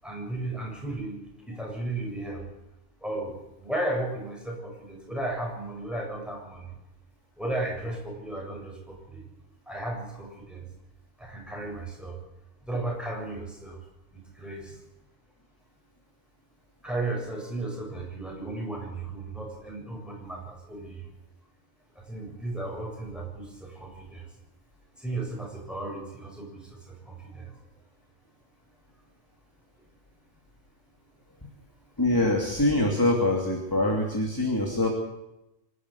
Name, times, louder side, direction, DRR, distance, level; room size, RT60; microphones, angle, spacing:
voice 1, 0.0-2.5 3.0-6.7 7.4-9.2 9.7-10.7 11.2-12.2 12.6-13.8 14.1-14.8 16.8-21.1 22.0-24.4 25.0-27.6, right 2 dB, ahead, -1 dB, 7.1 m, -35 dB
voice 2, 32.0-34.9, left 1 dB, 20° left, 0 dB, 2.8 m, -24 dB
25.5 x 13.0 x 8.4 m, 0.91 s
omnidirectional pair, 1.2 m